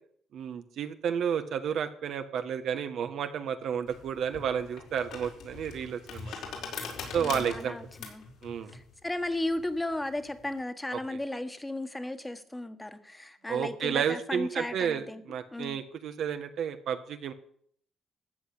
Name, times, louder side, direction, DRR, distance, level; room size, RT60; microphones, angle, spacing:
voice 1, 0.3-6.3 7.1-7.8 8.4-8.7 10.9-11.2 13.5-17.3, right 8 dB, 70° right, 8 dB, 1.4 m, -31 dB
sound 1, 3.9-10.5, left 5 dB, 80° left, 4.5 m, -42 dB
voice 2, 7.2-8.2 8.7-15.2 15.5-15.8, left 1 dB, 10° left, 11 dB, 1.6 m, -35 dB
14.0 x 8.1 x 8.7 m, 0.63 s
cardioid pair, 90°, 0 cm